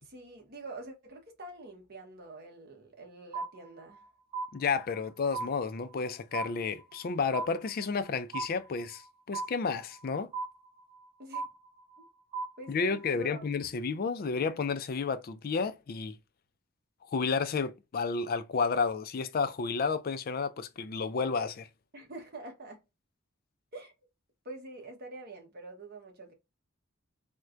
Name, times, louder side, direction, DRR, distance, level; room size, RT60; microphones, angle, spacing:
voice 1, 0.0-4.1 11.2-11.5 12.0-12.1 12.6-13.4 21.9-22.8 23.7-23.9 24.4-26.3, right 2 dB, 50° right, 1.0 m, -46 dB
sound 1, 3.3-4.0 4.3-5.1 5.3-6.1 6.3-7.1 7.3-8.1 8.3-9.1 9.3-10.1 10.3-11.1 11.3-12.1 12.3-13.1, right 4 dB, 25° right, 0.8 m, -38 dB
voice 2, 4.5-9.0 9.3-10.3 12.7-16.2 17.1-21.7, left 5 dB, 45° left, 0.4 m, -31 dB
4.3 x 2.2 x 2.5 m
head